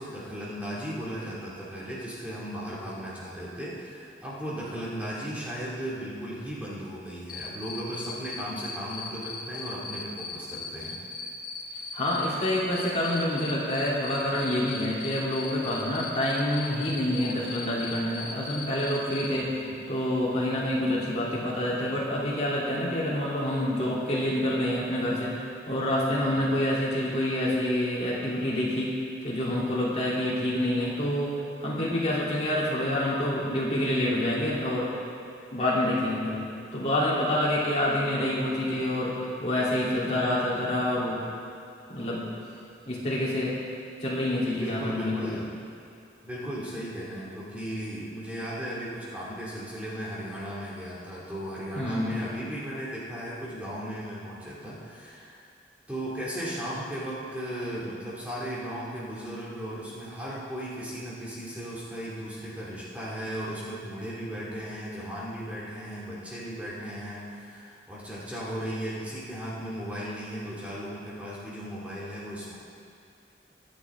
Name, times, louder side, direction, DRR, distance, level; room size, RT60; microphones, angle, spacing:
voice 1, 0.0-11.0 19.5-19.8 44.6-45.5 46.2-55.4 55.9-72.6, equal, 10° right, -8 dB, 2.3 m, -36 dB
Cricket, 7.3-19.3, left 5 dB, 55° left, 1.6 m, -37 dB
voice 2, 11.9-29.0 29.2-34.9 35.5-36.5 36.7-41.2 41.9-42.3 42.9-43.6 44.0-45.4 51.7-52.2, left 1 dB, 35° left, -7 dB, 3.0 m, -27 dB
23.5 x 8.6 x 3.7 m, 2.6 s
head